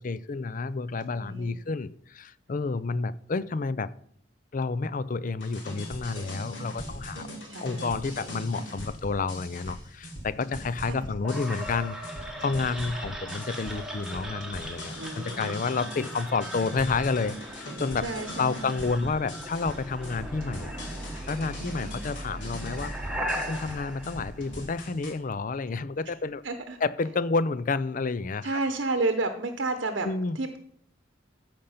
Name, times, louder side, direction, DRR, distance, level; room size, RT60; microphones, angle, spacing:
voice 1, 0.0-3.9 4.5-7.3 7.6-18.1 18.4-20.7 21.3-22.9 23.5-26.4 26.8-28.5 30.0-30.4, left 4 dB, 45° left, 17 dB, 0.5 m, -30 dB
voice 2, 1.1-1.6 7.4-8.0 10.8-11.1 15.0-15.6 18.0-18.8 21.6-22.0 26.4-26.8 28.4-30.1 30.3-30.6, right 2 dB, 65° right, 7 dB, 0.9 m, -31 dB
sound 1, 5.4-25.1, equal, 65° left, 3.5 m, -41 dB
sound 2, 11.2-25.1, equal, 5° right, 1.6 m, -38 dB
14.5 x 5.2 x 5.7 m, 0.66 s
head